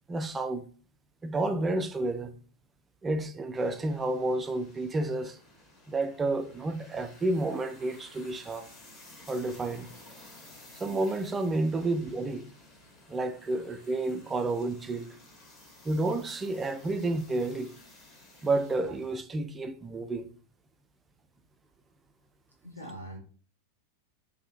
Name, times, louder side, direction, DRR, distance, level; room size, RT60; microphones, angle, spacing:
voice 1, 0.1-0.6 1.2-2.3 3.0-5.4 5.9-8.7 9.3-9.9 10.8-12.4 13.1-15.1 15.9-17.7 18.4-20.3, right 2 dB, 15° right, 0.3 m, -30 dB
sound 1, 3.5-19.2, left 2 dB, 25° left, 0.9 m, -54 dB
voice 2, 22.6-23.2, right 1 dB, 90° left, 0.6 m, -43 dB
2.7 x 2.6 x 2.5 m
figure-of-eight pair, 90°, 0 cm